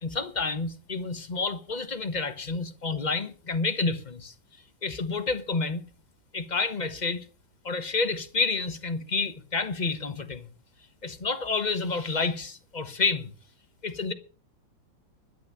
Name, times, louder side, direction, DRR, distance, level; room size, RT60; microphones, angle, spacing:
voice 1, 0.0-4.3 4.8-5.8 6.3-7.2 7.6-10.5 11.0-13.3 13.8-14.1, left 4 dB, 30° left, 1.1 m, -29 dB
12.0 x 10.0 x 6.4 m
omnidirectional pair, 2.1 m